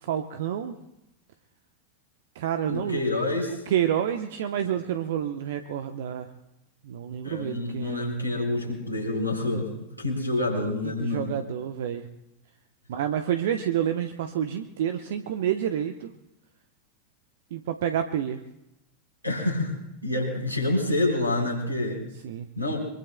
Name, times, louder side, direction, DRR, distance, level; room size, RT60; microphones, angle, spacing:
voice 1, 0.0-0.7 2.3-3.0 3.7-6.3 6.8-8.0 10.8-12.0 12.9-16.1 17.5-18.4 21.9-22.5, right 10 dB, 55° right, 8 dB, 0.8 m, -29 dB
voice 2, 2.7-3.6 7.2-11.3 19.2-19.7 20.0-22.0 22.6-22.8, left 2 dB, 90° right, 3 dB, 4.1 m, -27 dB
24.0 x 23.5 x 2.2 m, 0.88 s
figure-of-eight pair, 90°, 0 cm